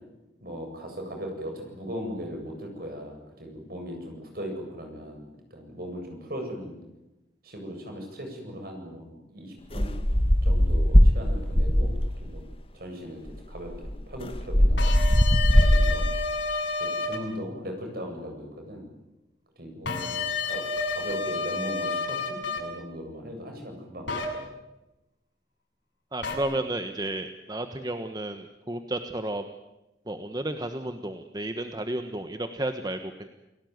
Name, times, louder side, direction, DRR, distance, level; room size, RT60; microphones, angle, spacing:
voice 1, 0.4-6.7 7.4-9.9 10.4-12.4 12.7-14.9 15.6-16.1 16.8-18.9 19.6-20.2 20.4-20.6 20.9-24.5, equal, 55° right, 3 dB, 7.9 m, -38 dB
sound 1, 9.7-12.3 13.3-13.4 13.6-16.3, equal, 30° left, 1.7 m, -20 dB
sound 2, 14.8-17.2 19.9-22.6 24.1-24.3 26.2-26.3, left 4 dB, 90° left, 6.8 m, -30 dB
voice 2, 26.1-29.4 30.1-33.3, right 1 dB, 20° right, 7 dB, 1.3 m, -32 dB
29.0 x 18.5 x 9.6 m, 1.0 s
head